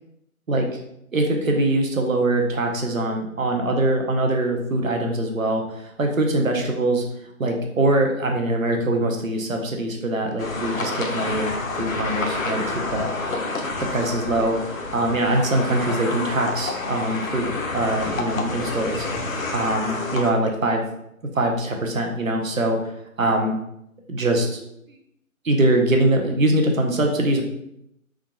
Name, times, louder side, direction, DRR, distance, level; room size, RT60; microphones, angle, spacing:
voice 1, 0.5-0.8 1.1-7.0 7.4-11.5 11.8-13.1 13.8-14.6 14.9-19.1 19.5-20.8 21.3-22.9 23.2-23.6 24.1-24.6 25.4-27.4, right 1 dB, 65° right, 2 dB, 0.8 m, -23 dB
sound 1, 10.4-20.3, left 3 dB, 70° left, 0.7 m, -28 dB
3.7 x 3.6 x 2.3 m, 0.77 s
figure-of-eight pair, 175°, 43 cm